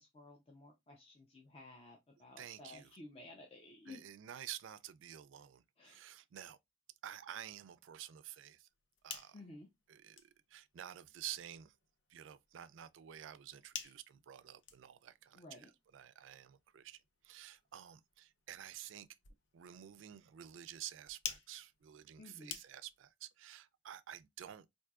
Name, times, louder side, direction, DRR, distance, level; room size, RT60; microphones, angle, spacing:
voice 1, 0.0-4.0 5.8-6.0 9.3-9.7 15.3-15.7 22.2-22.6, left 2 dB, 30° left, 0.6 m, -54 dB
voice 2, 2.4-2.9 3.9-6.6 7.0-8.7 9.0-9.4 9.9-11.7 12.1-19.1 19.5-24.7, right 11 dB, 85° right, 0.4 m, -50 dB
sound 1, 8.7-23.1, left 7 dB, 70° left, 0.6 m, -53 dB
4.4 x 2.7 x 2.3 m
head